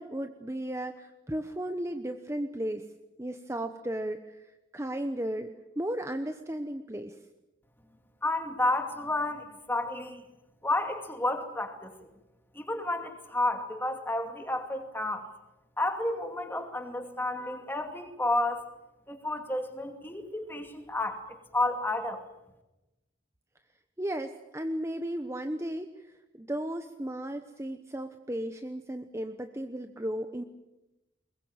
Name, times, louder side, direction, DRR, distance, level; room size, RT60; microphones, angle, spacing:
voice 1, 0.0-2.8 3.2-7.2 24.0-30.4, right 1 dB, 15° right, 7 dB, 1.0 m, -35 dB
voice 2, 8.2-10.2 10.6-11.9 12.5-15.3 15.8-18.7 19.1-21.2 21.5-22.2, left 2 dB, 10° left, 5 dB, 2.5 m, -31 dB
23.0 x 20.5 x 9.0 m, 0.99 s
head